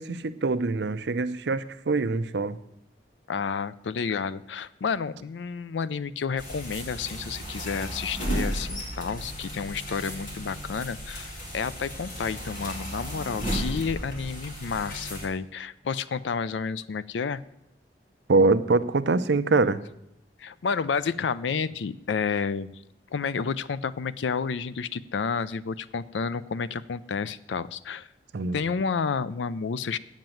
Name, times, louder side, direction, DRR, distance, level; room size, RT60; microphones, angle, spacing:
voice 1, 0.0-2.6 18.3-19.8 28.3-28.6, right 3 dB, 70° right, 12 dB, 0.6 m, -24 dB
voice 2, 3.3-17.4 20.4-22.7 23.1-28.1 28.5-30.0, left 5 dB, 85° left, 16 dB, 0.4 m, -30 dB
sound 1, 6.4-15.3, equal, 45° left, 2.5 m, -34 dB
9.0 x 7.3 x 7.7 m, 0.79 s
head